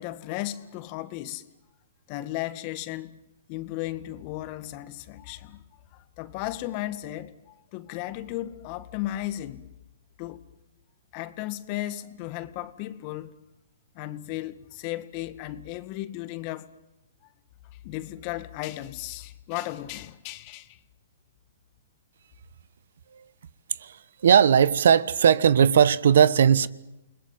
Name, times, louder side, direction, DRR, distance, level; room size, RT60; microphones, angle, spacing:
voice 1, 0.0-1.5 2.1-3.2 3.5-5.6 5.9-9.7 10.2-10.4 11.1-13.3 14.0-16.7 17.8-20.8, left 15 dB, 35° left, 2.0 m, -35 dB
voice 2, 24.2-26.7, right 8 dB, 70° right, 1.2 m, -18 dB
29.5 x 21.0 x 9.4 m
hypercardioid pair, 145°, 0 cm